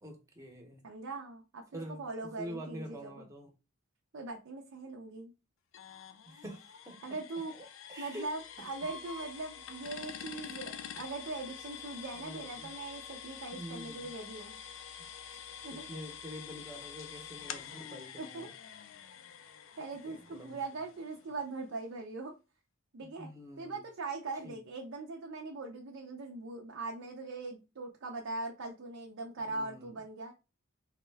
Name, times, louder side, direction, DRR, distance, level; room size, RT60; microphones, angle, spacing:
voice 1, 0.0-0.8 1.7-3.5 6.3-7.0 7.5-7.6 7.9-8.3 12.2-12.7 13.5-14.1 15.3-15.4 15.7-18.5 20.1-20.6 23.0-23.8 24.4-24.6 29.4-29.9, equal, 15° right, 0.7 m, -46 dB
voice 2, 0.8-3.3 4.1-5.3 7.0-7.5 8.0-14.6 15.6-15.9 18.2-18.5 19.8-22.3 22.9-23.3 23.6-30.3, right 3 dB, 70° right, 0.5 m, -41 dB
sound 1, 5.7-21.4, left 7 dB, 65° left, 0.4 m, -47 dB
3.5 x 2.1 x 3.3 m
head